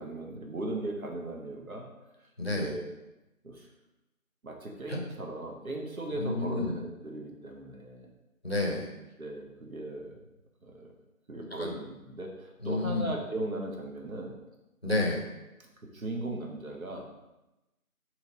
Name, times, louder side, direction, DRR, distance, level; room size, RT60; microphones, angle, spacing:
voice 1, 0.0-1.9 2.5-2.8 3.4-3.6 4.4-8.1 9.2-10.2 10.6-10.9 11.3-14.4 15.8-17.0, right 2 dB, 75° right, 1 dB, 0.9 m, -37 dB
voice 2, 2.4-2.8 4.9-5.0 6.2-6.7 8.4-8.9 11.6-11.7 12.6-13.1 14.8-15.3, left 2 dB, 45° left, -1 dB, 0.6 m, -30 dB
2.9 x 2.8 x 3.9 m, 1.0 s
figure-of-eight pair, 180°, 43 cm